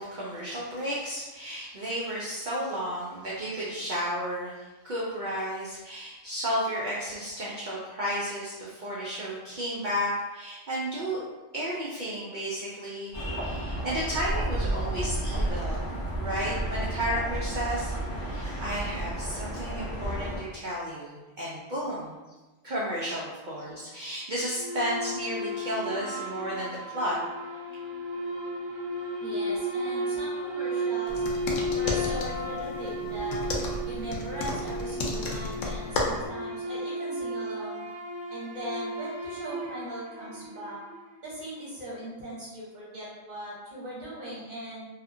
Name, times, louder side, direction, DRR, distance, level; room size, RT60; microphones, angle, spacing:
voice 1, 0.0-11.2 11.5-15.9 16.2-22.2 22.6-27.2, equal, 65° right, -6 dB, 0.4 m, -33 dB
sound 1, 13.1-20.4, right 1 dB, 25° left, 0.6 m, -31 dB
sound 2, 24.5-41.1, equal, 85° right, 1.0 m, -34 dB
voice 2, 29.2-31.2 31.7-33.5 33.9-37.8 38.3-40.8 41.2-44.8, equal, 40° right, -7 dB, 0.8 m, -39 dB
sound 3, 31.1-36.3, left 2 dB, 70° left, 0.9 m, -33 dB
2.8 x 2.4 x 2.5 m, 1.2 s
omnidirectional pair, 1.4 m